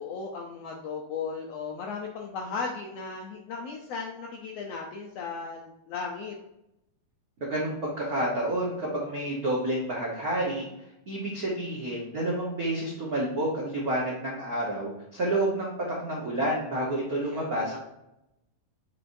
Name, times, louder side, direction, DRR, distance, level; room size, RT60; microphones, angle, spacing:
voice 1, 0.0-6.3 17.2-17.8, left 5 dB, 80° left, 1 dB, 1.4 m, -36 dB
voice 2, 7.4-10.7 11.1-15.7 16.0-17.8, right 1 dB, 85° right, -4 dB, 0.8 m, -29 dB
7.7 x 4.8 x 2.6 m, 0.87 s
omnidirectional pair, 3.6 m